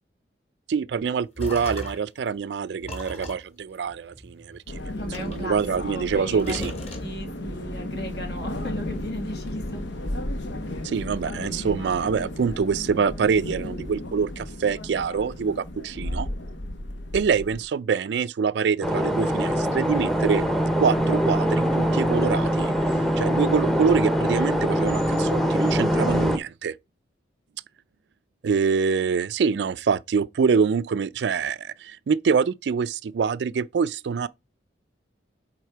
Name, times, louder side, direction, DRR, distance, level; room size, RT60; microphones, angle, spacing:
voice 1, 0.7-4.6 5.2-6.7 10.8-16.3 17.1-20.4 20.8-22.7 23.2-26.8 28.4-34.3, right 6 dB, 75° right, 0.4 m, -25 dB
sound 1, 1.0-2.2 2.8-4.6 5.1-6.1 6.4-7.5, left 1 dB, 35° left, 1.9 m, -37 dB
sound 2, 4.7-17.6, left 1 dB, 85° left, 1.1 m, -34 dB
voice 2, 4.9-5.6 5.9-6.6 7.0-9.8 25.9-26.3, equal, 60° left, 2.1 m, -36 dB
sound 3, 18.8-26.4, equal, ahead, 0.7 m, -23 dB
8.1 x 3.6 x 4.5 m
head